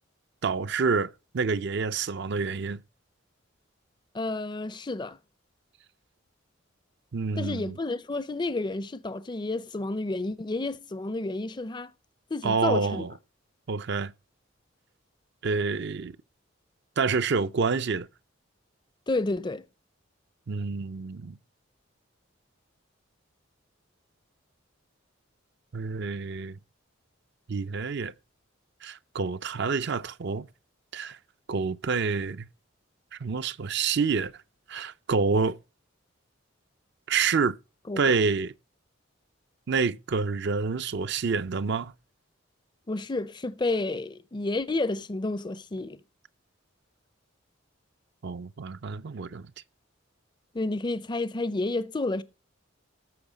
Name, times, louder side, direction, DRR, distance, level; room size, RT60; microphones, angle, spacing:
voice 1, 0.4-2.8 7.1-7.8 12.4-13.1 13.7-14.1 15.4-16.2 17.0-18.1 20.5-21.4 25.7-26.6 27.5-28.1 28.8-30.5 30.9-31.2 31.5-32.5 33.1-34.3 34.7-35.6 37.1-37.6 38.0-38.5 39.7-41.9 48.2-49.5, right 5 dB, 55° right, 0.5 m, -28 dB
voice 2, 4.1-5.2 7.4-11.9 12.3-13.1 19.1-19.6 37.9-38.0 42.9-46.0 50.5-52.2, left 2 dB, 20° left, 0.5 m, -30 dB
13.5 x 6.9 x 5.0 m
head